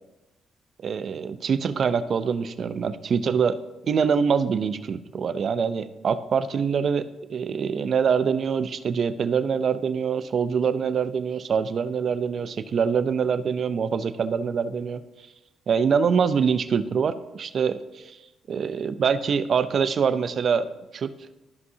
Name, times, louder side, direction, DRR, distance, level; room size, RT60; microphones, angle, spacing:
voice 1, 0.8-15.0 15.7-18.2 18.5-20.7 20.9-21.1, right 6 dB, 55° right, 12 dB, 0.4 m, -24 dB
12.5 x 5.3 x 2.7 m, 1.0 s
cardioid pair, 90°, 0 cm